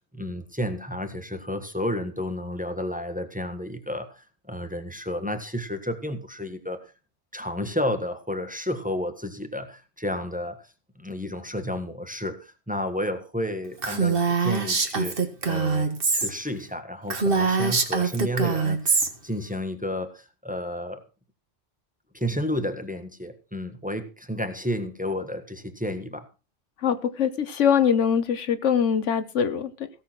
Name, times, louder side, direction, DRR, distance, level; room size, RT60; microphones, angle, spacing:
voice 1, 0.1-6.8 7.3-10.6 11.0-15.2 15.5-21.0 22.1-26.3, equal, 5° right, 7 dB, 1.5 m, -31 dB
Female speech woman speaking, 13.8-16.3 16.6-16.7 17.1-19.1, right 4 dB, 50° right, 1.8 m, -23 dB
voice 2, 26.8-29.9, left 7 dB, 85° left, 12 dB, 1.3 m, -23 dB
16.5 x 6.9 x 6.0 m, 0.33 s
omnidirectional pair, 1.2 m